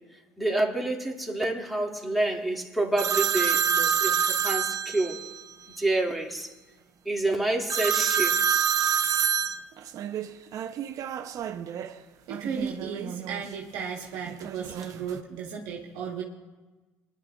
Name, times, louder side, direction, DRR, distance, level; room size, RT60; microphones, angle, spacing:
voice 1, 0.4-5.2 5.8-6.5 7.1-8.6, right 2 dB, ahead, -1 dB, 2.3 m, -28 dB
sound 1, 3.0-5.4 7.7-11.9 12.3-13.4 14.3-15.2, right 7 dB, 55° right, 0.6 m, -27 dB
voice 2, 12.3-16.2, right 6 dB, 75° right, -2 dB, 1.3 m, -35 dB
28.0 x 10.5 x 2.4 m, 1.2 s
hypercardioid pair, 70°, 7 cm